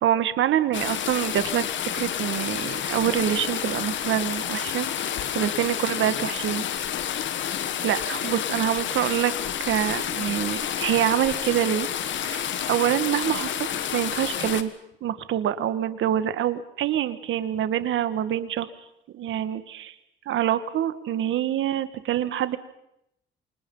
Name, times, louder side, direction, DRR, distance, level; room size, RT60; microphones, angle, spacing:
voice 1, 0.0-1.7 1.9-6.6 7.8-9.3 9.6-11.9 12.2-14.7 15.0-18.7 19.1-19.9 20.3-22.6, right 11 dB, 75° right, 12 dB, 1.8 m, -26 dB
sound 1, 0.7-14.6, left 9 dB, 70° left, 1.9 m, -29 dB
28.0 x 26.5 x 5.7 m, 0.80 s
cardioid pair, 90°, 20 cm